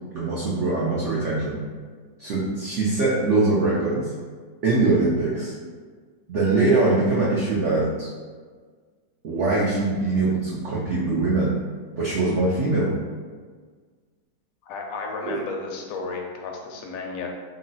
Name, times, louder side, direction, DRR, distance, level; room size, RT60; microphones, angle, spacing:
voice 1, 0.1-1.6 2.2-4.1 4.6-5.5 6.3-8.1 9.2-11.5 12.0-12.9 15.2-15.4, right 3 dB, 90° right, -6 dB, 0.6 m, -22 dB
voice 2, 14.6-17.3, left 4 dB, 70° left, 1 dB, 0.8 m, -33 dB
3.0 x 2.0 x 3.9 m, 1.5 s
omnidirectional pair, 1.9 m